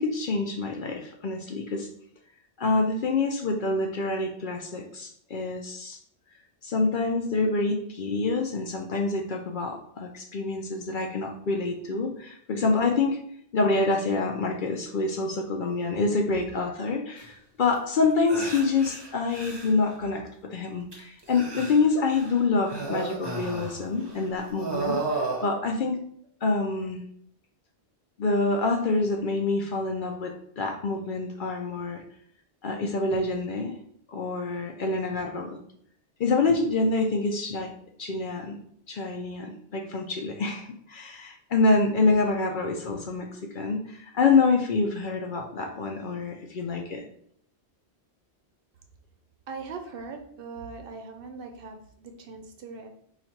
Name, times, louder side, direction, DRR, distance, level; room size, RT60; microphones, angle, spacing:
voice 1, 0.0-1.9 2.6-6.0 6.6-13.2 13.5-26.0 26.4-27.0 28.2-32.0 32.6-33.8 34.1-35.6 36.2-37.7 38.0-38.6 38.9-47.0, left 3 dB, 55° left, 3 dB, 0.6 m, -26 dB
Man Pain Breathing War, 17.2-17.3 17.7-17.8 18.3-19.9 20.9-22.4 22.7-24.2 24.5-25.5, right 3 dB, 25° right, 0.8 m, -33 dB
voice 2, 49.5-52.9, right 4 dB, 60° right, 5 dB, 0.7 m, -40 dB
4.0 x 2.4 x 4.4 m, 0.65 s
omnidirectional pair, 1.1 m